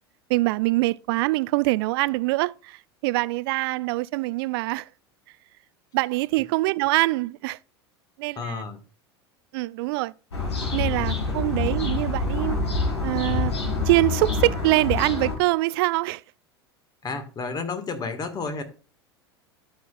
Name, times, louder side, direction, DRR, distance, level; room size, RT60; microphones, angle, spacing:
voice 1, 0.3-4.9 5.9-7.6 8.2-8.6 9.5-10.1 10.7-12.6 13.0-13.5 13.8-16.2, right 21 dB, 60° right, 0.4 m, -24 dB
voice 2, 8.4-8.8 11.3-11.4 17.0-18.6, left 4 dB, 30° left, 1.9 m, -31 dB
sound 1, 10.3-15.4, left 3 dB, 85° left, 2.4 m, -26 dB
12.5 x 5.8 x 2.5 m
hypercardioid pair, 85°, 14 cm